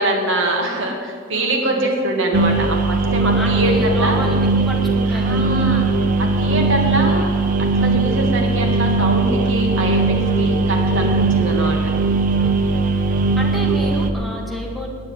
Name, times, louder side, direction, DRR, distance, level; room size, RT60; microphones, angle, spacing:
voice 1, 0.0-4.2 5.1-5.9 6.2-7.3 7.7-11.8, right 1 dB, 65° right, 2 dB, 2.1 m, -23 dB
voice 2, 1.3-1.9 3.3-5.6 13.4-14.9, equal, ahead, -2 dB, 1.8 m, -29 dB
sound 1, 2.3-14.1, right 3 dB, 40° right, 0.8 m, -19 dB
9.7 x 9.6 x 9.1 m, 2.2 s
head